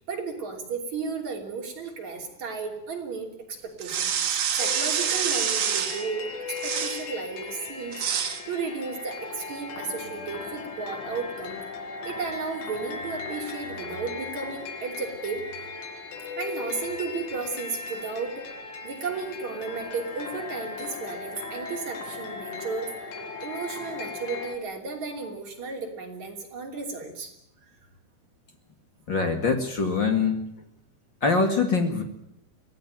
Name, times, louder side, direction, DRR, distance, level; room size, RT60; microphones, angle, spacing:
voice 1, 0.0-4.3 4.6-8.0 8.5-11.6 12.0-15.4 16.4-18.5 18.8-22.9 23.4-27.3, right 4 dB, 40° right, 1 dB, 4.0 m, -34 dB
sound 1, 3.8-6.1 6.6-7.1 7.9-8.4, right 8 dB, 60° right, 1.7 m, -27 dB
sound 2, 4.6-24.6, left 4 dB, 85° left, 4.5 m, -37 dB
voice 2, 29.1-30.4 31.2-32.0, left 4 dB, 50° left, 5 dB, 1.4 m, -23 dB
24.5 x 17.5 x 9.1 m, 0.76 s
omnidirectional pair, 5.4 m